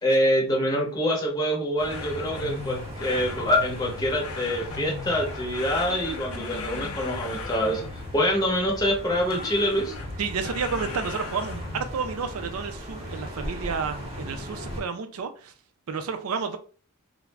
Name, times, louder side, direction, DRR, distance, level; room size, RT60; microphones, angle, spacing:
voice 1, 0.0-9.9, equal, 15° left, 0.7 m, -25 dB
sound 1, 1.8-14.8, equal, 25° right, 0.7 m, -38 dB
sound 2, 1.9-8.3 9.3-11.9, left 4 dB, 65° left, 0.4 m, -38 dB
voice 2, 10.2-15.5 15.9-16.6, right 5 dB, 70° right, 0.4 m, -31 dB
2.4 x 2.0 x 3.2 m
head